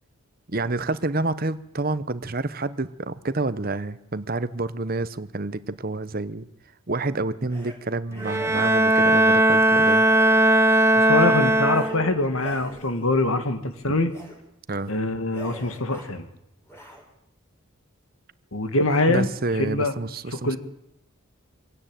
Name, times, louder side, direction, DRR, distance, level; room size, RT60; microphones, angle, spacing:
voice 1, 0.5-6.5 6.9-10.0 13.9-14.0 14.7-14.9 19.1-20.6, right 2 dB, 40° right, 14 dB, 0.9 m, -28 dB
sound 1, 7.5-7.8 8.1-9.0 9.8-10.8 11.6-12.0 12.3-13.3 14.0-14.4 14.7-14.9 15.3-16.2 16.6-17.0, left 1 dB, 10° left, 5.2 m, -44 dB
Bowed string instrument, 8.2-12.3, right 1 dB, 10° right, 1.0 m, -19 dB
voice 2, 10.9-14.1 14.9-16.3 18.5-19.3 19.6-19.9 20.4-20.6, left 2 dB, 70° left, 8 dB, 2.2 m, -23 dB
24.0 x 17.0 x 9.1 m, 0.80 s
head